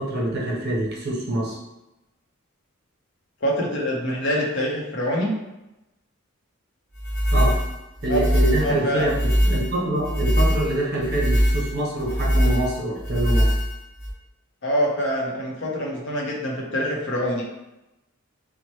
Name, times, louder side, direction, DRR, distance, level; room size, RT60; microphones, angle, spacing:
voice 1, 0.0-1.6 7.3-7.6 8.0-13.6, right 1 dB, 50° right, -3 dB, 0.6 m, -25 dB
voice 2, 3.4-5.3 8.1-8.2 8.6-9.1 14.6-17.4, equal, 60° left, -2 dB, 0.7 m, -25 dB
sound 1, 7.0-14.1, equal, 35° left, 1.2 m, -22 dB
2.9 x 2.0 x 3.0 m, 0.95 s
head